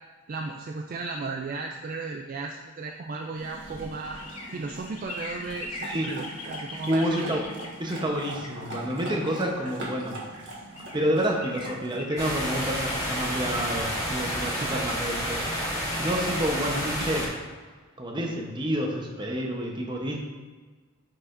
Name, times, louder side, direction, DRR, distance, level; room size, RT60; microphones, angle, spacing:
voice 1, 0.3-4.2 4.5-7.4 14.6-15.0, right 3 dB, 40° right, 2 dB, 0.3 m, -35 dB
sound 1, 3.1-9.9 10.4-10.5 10.7-16.5 16.9-17.0, left 2 dB, 90° left, 1.0 m, -43 dB
sound 2, 3.3-12.0, right 1 dB, 55° right, 1.5 m, -41 dB
voice 2, 6.9-7.4 7.8-10.2 10.9-15.4 15.9-17.3 18.0-20.2, equal, 20° right, 0 dB, 0.8 m, -29 dB
sound 3, 12.2-17.3, equal, 15° left, 1.7 m, -30 dB
9.5 x 4.8 x 2.5 m, 1.4 s
head